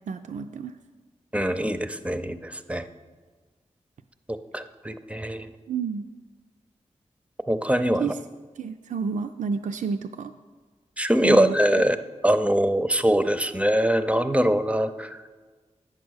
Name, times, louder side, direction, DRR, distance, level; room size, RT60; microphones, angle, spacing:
voice 1, 0.1-0.8 5.7-6.1 8.0-8.2 8.6-10.3 11.2-11.6, right 5 dB, 75° right, 7 dB, 0.4 m, -30 dB
voice 2, 1.3-2.9 4.5-5.5 7.5-8.1 11.0-12.0 12.2-15.2, right 1 dB, 10° right, 10 dB, 0.5 m, -23 dB
8.8 x 6.1 x 6.3 m, 1.4 s
cardioid pair, 60°, 13 cm